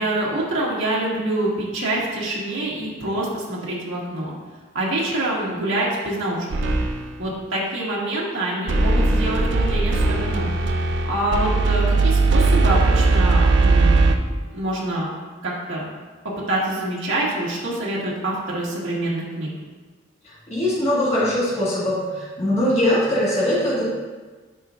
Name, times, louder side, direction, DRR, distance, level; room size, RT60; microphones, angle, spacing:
voice 1, 0.0-4.3 4.7-6.7 7.2-10.5 11.0-14.1 14.5-15.1 15.4-15.9 16.5-19.5, right 1 dB, 85° right, -6 dB, 1.6 m, -26 dB
sound 1, 6.5-7.2 8.7-14.2, right 3 dB, 65° right, 0.4 m, -19 dB
voice 2, 20.2-23.8, left 1 dB, 35° left, -8 dB, 1.5 m, -21 dB
9.8 x 4.6 x 2.4 m, 1.3 s
head